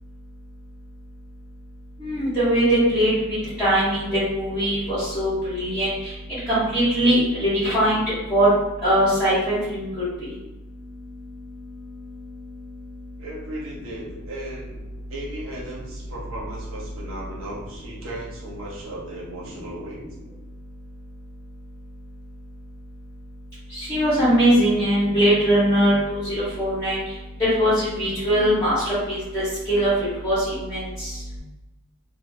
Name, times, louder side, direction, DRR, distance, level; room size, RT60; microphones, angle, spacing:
voice 1, 2.0-3.1 3.6-4.1 4.3-5.9 6.5-8.0 8.3-8.5 8.8-9.9 23.9-27.0 27.4-29.9 30.2-30.4 30.7-30.8, equal, 15° left, -14 dB, 1.3 m, -20 dB
voice 2, 13.2-14.8 15.1-20.0, right 1 dB, 65° right, -5 dB, 1.0 m, -36 dB
2.7 x 2.4 x 3.2 m, 1.0 s
head